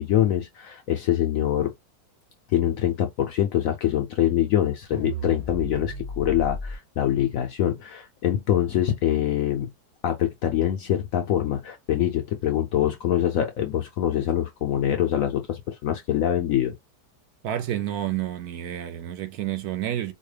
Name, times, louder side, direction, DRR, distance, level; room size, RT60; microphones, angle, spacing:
voice 1, 0.0-1.7 2.5-9.7 10.0-16.7, left 11 dB, 70° left, 0.8 m, -24 dB
sound 1, 4.9-6.8, right 1 dB, 30° right, 0.7 m, -33 dB
voice 2, 17.4-20.1, right 12 dB, 70° right, 1.0 m, -29 dB
4.3 x 2.2 x 3.2 m
omnidirectional pair, 1.8 m